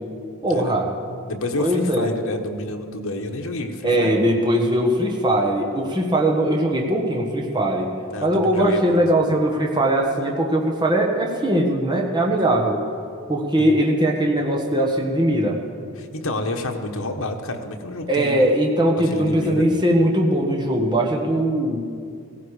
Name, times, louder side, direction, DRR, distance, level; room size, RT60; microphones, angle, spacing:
voice 1, 0.4-0.9 1.6-2.1 3.8-7.9 8.2-12.8 13.3-15.6 18.1-21.8, right 1 dB, 20° right, 0 dB, 1.4 m, -20 dB
voice 2, 1.3-4.2 8.1-9.0 13.6-13.8 16.0-18.5 19.0-19.7, left 2 dB, 75° left, 3 dB, 1.3 m, -29 dB
16.5 x 16.0 x 5.0 m, 2.3 s
head